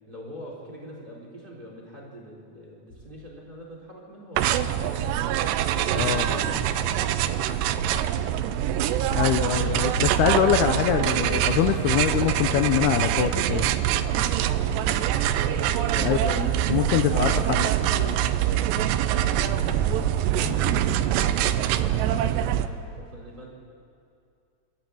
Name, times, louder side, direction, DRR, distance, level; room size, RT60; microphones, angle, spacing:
voice 1, 0.0-5.1 5.7-8.3 14.0-15.2 15.6-16.1 18.7-23.5, right 1 dB, 10° right, -2 dB, 4.1 m, -44 dB
sound 1, 2.9-3.4 4.7-6.6 7.3-7.9 8.6-8.7 9.1-11.1 12.2-12.8 13.5-16.9 17.3-17.4 17.9-21.1, left 1 dB, 50° left, 7.9 m, -43 dB
sound 2, 4.4-22.7, right 11 dB, 80° right, 2.7 m, -24 dB
voice 2, 6.0-6.4 9.1-13.7 16.0-17.7 18.0-18.2, left 10 dB, 85° left, 7 dB, 2.3 m, -24 dB
26.5 x 13.0 x 9.0 m, 2.5 s
omnidirectional pair, 5.3 m